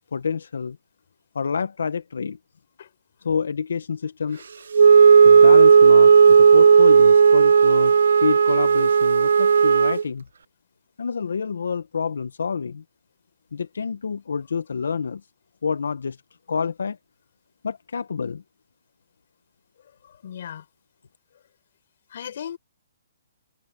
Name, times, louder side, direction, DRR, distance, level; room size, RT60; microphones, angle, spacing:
voice 1, 0.1-0.8 1.3-2.4 3.2-4.4 5.2-7.9 8.2-10.3 11.0-12.8 13.5-15.2 15.6-16.2 16.5-17.0 17.6-18.4, left 5 dB, 90° left, 0.8 m, -28 dB
Wind instrument woodwind instrument, 4.7-10.0, right 6 dB, 75° right, 0.4 m, -13 dB
voice 2, 4.9-5.2 20.0-20.7 22.1-22.6, left 9 dB, 50° left, 6.6 m, -38 dB
hypercardioid pair, 170°, 0 cm